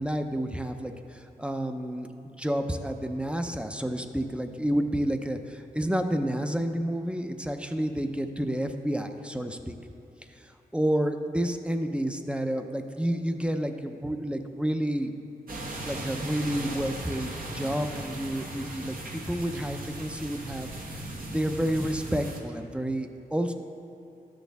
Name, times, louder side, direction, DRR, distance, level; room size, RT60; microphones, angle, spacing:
voice 1, 0.0-9.8 10.4-15.1 15.9-23.5, right 1 dB, 5° right, 6 dB, 0.6 m, -30 dB
sound 1, 15.5-22.4, right 1 dB, 65° right, 1.2 m, -37 dB
12.5 x 6.4 x 3.5 m, 2.7 s
cardioid pair, 60°, 16 cm